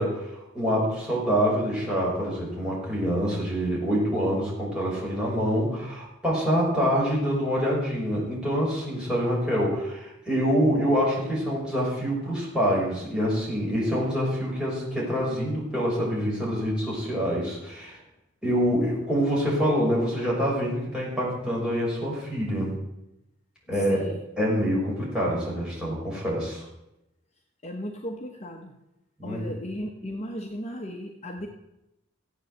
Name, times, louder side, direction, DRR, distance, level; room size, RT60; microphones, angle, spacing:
voice 1, 0.0-18.0 18.4-22.8 23.7-24.0 24.4-26.6 29.2-29.4, equal, 5° right, -6 dB, 6.0 m, -26 dB
voice 2, 23.7-24.2 27.6-28.7 29.2-31.5, equal, 30° left, 1 dB, 1.2 m, -36 dB
15.0 x 8.6 x 8.0 m, 0.90 s
head